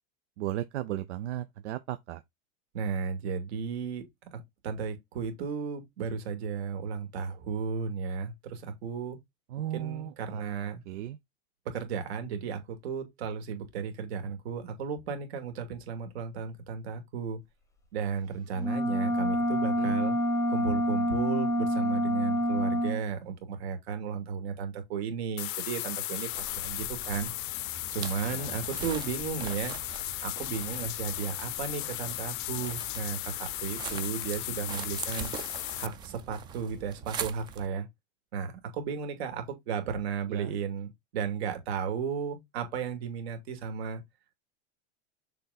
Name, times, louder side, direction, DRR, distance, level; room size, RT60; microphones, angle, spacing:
voice 1, 0.4-2.2 9.5-10.5 10.9-11.2 19.8-19.9 28.3-28.6 40.3-40.5, right 13 dB, 85° right, 0.7 m, -36 dB
voice 2, 2.7-4.0 4.3-9.2 9.7-10.8 11.7-17.4 17.9-20.2 20.5-27.3 27.9-29.7 30.2-35.3 35.8-37.9 38.3-44.0, right 6 dB, 65° right, 2.5 m, -34 dB
sound 1, 18.6-23.0, equal, 10° left, 0.8 m, -27 dB
sound 2, 25.4-35.9, left 18 dB, 50° left, 0.5 m, -36 dB
sound 3, 26.3-37.7, right 7 dB, 15° right, 0.4 m, -42 dB
6.7 x 4.1 x 4.0 m
supercardioid pair, 160°, 34 cm